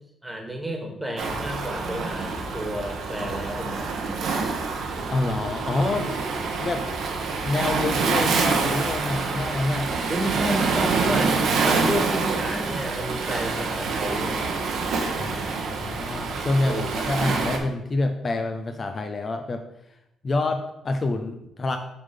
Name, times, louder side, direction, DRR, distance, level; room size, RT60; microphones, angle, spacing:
voice 1, 0.2-4.4 10.1-11.3 11.6-14.5 16.6-17.0, equal, 10° right, 3 dB, 1.6 m, -31 dB
Waves surf, 1.2-17.6, right 4 dB, 70° right, 1.1 m, -26 dB
voice 2, 5.1-6.1 6.6-6.8 7.4-9.9 15.2-19.6 20.2-21.8, left 2 dB, 35° left, 6 dB, 0.5 m, -27 dB
6.7 x 3.8 x 5.2 m, 0.84 s
cardioid pair, 90°, 0 cm